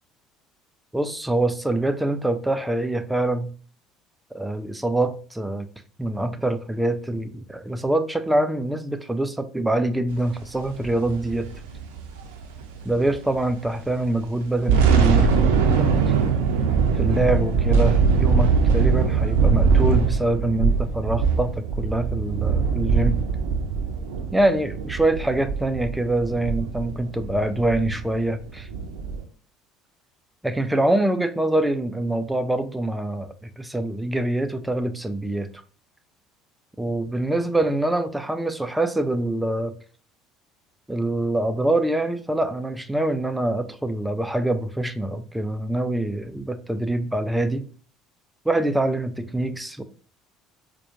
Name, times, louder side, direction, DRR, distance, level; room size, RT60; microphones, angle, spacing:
voice 1, 0.9-3.5 4.3-5.7 6.0-11.5 12.8-15.9 17.0-23.2 24.3-28.7 30.4-35.5 36.8-39.7 40.9-47.7 48.5-49.8, right 1 dB, 5° right, 0.4 m, -25 dB
sound 1, 10.6-13.4 13.7-13.9 14.4-29.2, right 5 dB, 65° right, 0.5 m, -22 dB
4.1 x 2.2 x 2.9 m
figure-of-eight pair, 60°, 0 cm